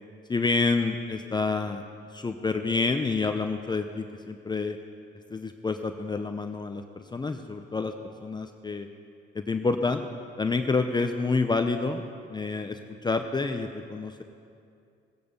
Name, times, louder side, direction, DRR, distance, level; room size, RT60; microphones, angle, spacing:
voice 1, 0.3-1.8 2.1-4.8 5.3-7.9 8.2-8.9 9.5-10.0 10.4-12.0 12.3-14.2, left 4 dB, 20° left, 6 dB, 0.7 m, -28 dB
20.0 x 8.6 x 5.4 m, 2.5 s
cardioid pair, 90°, 20 cm